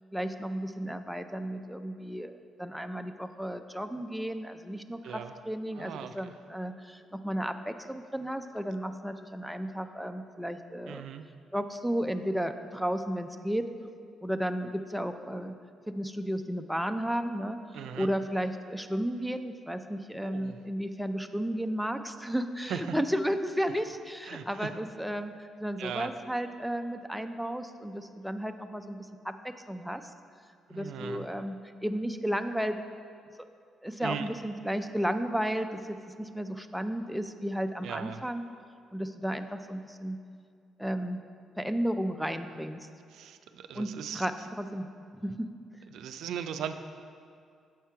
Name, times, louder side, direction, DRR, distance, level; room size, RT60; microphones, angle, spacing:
voice 1, 0.1-11.1 11.5-13.7 14.2-15.5 15.9-17.6 18.0-30.0 30.7-31.6 31.8-32.8 33.8-38.5 38.9-40.2 40.8-41.2 41.6-42.9 43.7-44.3 44.6-44.9 45.2-45.5, equal, ahead, 7 dB, 0.3 m, -33 dB
voice 2, 5.0-5.3 5.8-6.3 10.9-11.2 17.7-18.1 20.2-20.6 22.7-23.0 24.2-24.7 25.8-26.1 30.7-31.3 34.0-34.3 37.8-38.2 43.1-44.3 45.9-46.8, right 8 dB, 80° right, 8 dB, 0.3 m, -38 dB
7.4 x 4.4 x 4.6 m, 2.3 s
cardioid pair, 90°, 0 cm